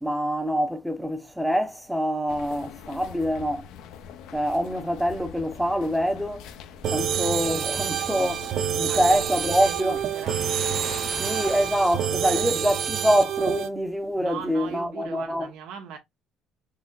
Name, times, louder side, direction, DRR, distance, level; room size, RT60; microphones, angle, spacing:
voice 1, 0.0-3.7 4.3-6.5 6.9-10.0 11.2-15.5, equal, 5° right, 0.7 m, -25 dB
sound 1, 2.3-10.1, left 7 dB, 80° left, 0.5 m, -44 dB
sound 2, 6.8-13.7, right 8 dB, 55° right, 0.4 m, -27 dB
voice 2, 8.9-10.4 12.2-12.5 14.2-16.0, right 8 dB, 80° right, 1.1 m, -38 dB
Waves surf, 10.0-12.1, left 6 dB, 35° left, 0.3 m, -40 dB
3.9 x 3.0 x 2.3 m
cardioid pair, 110°, 0 cm